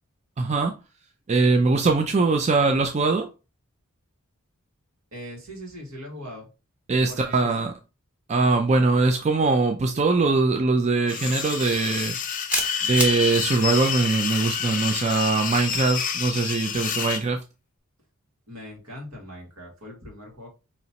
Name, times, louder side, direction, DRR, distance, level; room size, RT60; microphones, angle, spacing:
voice 1, 0.4-0.7 1.3-3.3 6.9-7.7 8.3-12.2 12.8-17.4, right 3 dB, 30° right, 0.4 m, -22 dB
voice 2, 5.1-6.5 7.0-7.7 18.5-20.5, equal, 75° right, 2.0 m, -40 dB
sound 1, 11.1-17.2, left 7 dB, 40° left, 0.5 m, -28 dB
sound 2, 11.7-11.8 12.5-13.2, equal, 5° right, 0.8 m, -26 dB
5.2 x 3.0 x 2.8 m
head